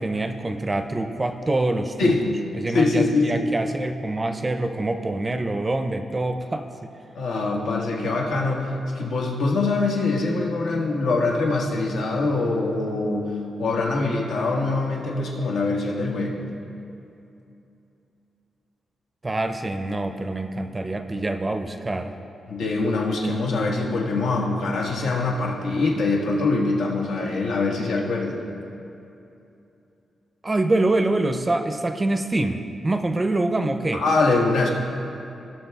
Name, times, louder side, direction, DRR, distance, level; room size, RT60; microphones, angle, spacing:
voice 1, 0.0-2.1 2.6-6.9 19.2-22.1 30.4-34.0, right 2 dB, 20° right, 7 dB, 0.5 m, -25 dB
voice 2, 2.7-3.4 7.1-13.3 13.6-16.4 22.5-28.4 33.9-34.7, left 3 dB, 90° left, -1 dB, 1.4 m, -23 dB
17.5 x 6.1 x 3.5 m, 2.7 s
wide cardioid pair, 150°, 0 cm